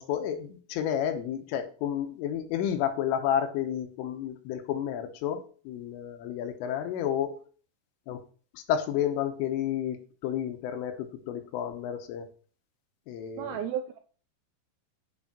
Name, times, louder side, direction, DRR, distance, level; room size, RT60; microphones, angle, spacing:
voice 1, 0.0-7.4 8.1-8.2 8.5-12.3 13.1-13.6, left 9 dB, 80° left, 3.7 m, -31 dB
voice 2, 13.4-14.0, right 9 dB, 85° right, 2.4 m, -33 dB
9.2 x 7.0 x 4.2 m
omnidirectional pair, 5.8 m